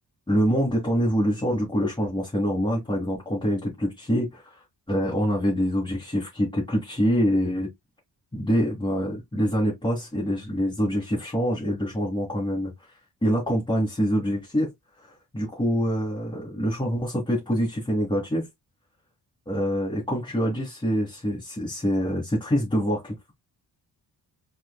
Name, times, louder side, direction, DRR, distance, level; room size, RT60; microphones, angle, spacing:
voice 1, 0.3-4.6 4.9-7.7 8.3-12.7 13.2-14.7 15.3-18.5 19.5-23.2, equal, 10° left, 2.2 m, -25 dB
4.5 x 4.3 x 2.3 m
wide cardioid pair, 165°, 41 cm